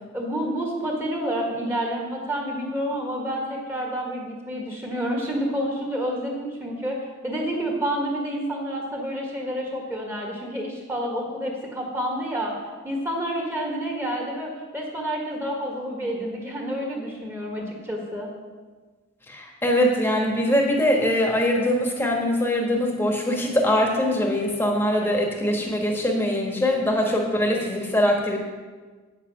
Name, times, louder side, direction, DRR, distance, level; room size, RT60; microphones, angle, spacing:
voice 1, 0.1-12.6 12.8-18.3 24.9-25.3, equal, 10° right, -1 dB, 1.6 m, -29 dB
voice 2, 19.3-28.4, left 1 dB, 10° left, 0 dB, 1.4 m, -22 dB
8.8 x 7.5 x 6.0 m, 1.4 s
head